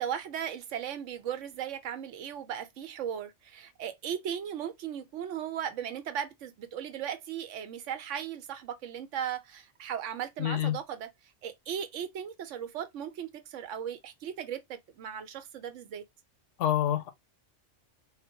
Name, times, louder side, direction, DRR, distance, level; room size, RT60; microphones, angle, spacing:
voice 1, 0.0-11.1 11.4-16.0, right 9 dB, 80° right, 1.0 m, -37 dB
voice 2, 10.4-10.8 16.6-17.1, left 12 dB, 80° left, 0.9 m, -27 dB
3.7 x 2.1 x 2.7 m
omnidirectional pair, 1.3 m